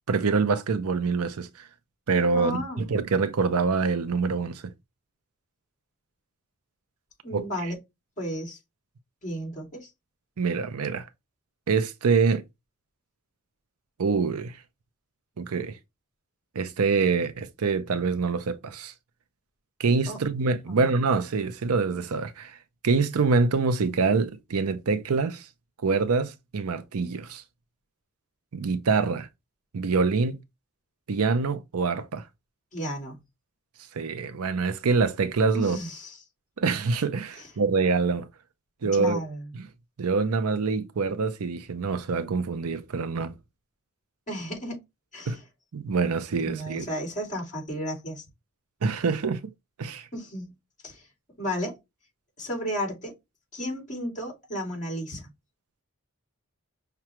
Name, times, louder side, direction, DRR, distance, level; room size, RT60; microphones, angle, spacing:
voice 1, 0.1-1.7 2.1-4.7 7.3-7.7 10.4-11.1 11.7-12.4 14.0-14.6 15.4-15.8 16.6-18.9 19.8-22.6 22.8-25.5 25.8-27.4 28.5-29.3 29.7-30.4 31.1-32.2 33.9-35.8 36.6-38.3 38.8-39.2 39.5-39.7 40.0-43.3 45.3-45.4 45.7-46.9 48.8-49.5 49.8-50.1, right 4 dB, 75° right, 0.6 m, -25 dB
voice 2, 2.3-2.8 7.2-7.8 8.2-8.6 9.2-9.9 20.1-20.2 20.7-20.9 32.7-33.2 35.5-36.2 38.8-39.5 44.3-44.8 45.1-45.4 46.4-48.3 50.1-50.5 50.8-51.0 51.4-51.8 52.4-53.1 53.5-55.3, equal, 35° left, 2.3 m, -33 dB
5.8 x 2.3 x 2.9 m
head